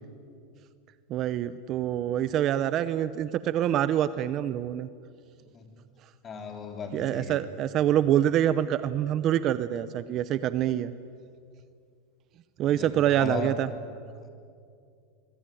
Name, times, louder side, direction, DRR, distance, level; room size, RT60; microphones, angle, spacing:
voice 1, 1.1-4.9 6.9-10.9 12.6-13.7, right 11 dB, 35° right, 14 dB, 0.7 m, -26 dB
voice 2, 6.2-7.4 12.6-13.5 14.2-14.3, left 4 dB, 20° left, 5 dB, 3.3 m, -36 dB
24.5 x 24.0 x 9.2 m, 2.4 s
supercardioid pair, 155°, 0 cm